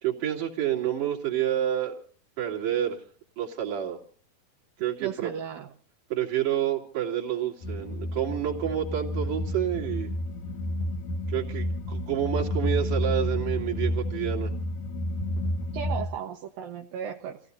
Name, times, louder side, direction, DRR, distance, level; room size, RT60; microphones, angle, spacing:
voice 1, 0.0-2.0 2.4-3.0 3.4-4.0 4.8-5.3 6.1-10.1 11.3-14.5, right 11 dB, 50° right, -1 dB, 4.0 m, -29 dB
voice 2, 5.0-5.7 15.7-17.4, right 8 dB, 75° right, 1 dB, 2.9 m, -35 dB
sound 1, 7.6-16.1, left 1 dB, 65° left, 2.1 m, -30 dB
30.0 x 16.5 x 2.7 m, 0.43 s
omnidirectional pair, 4.3 m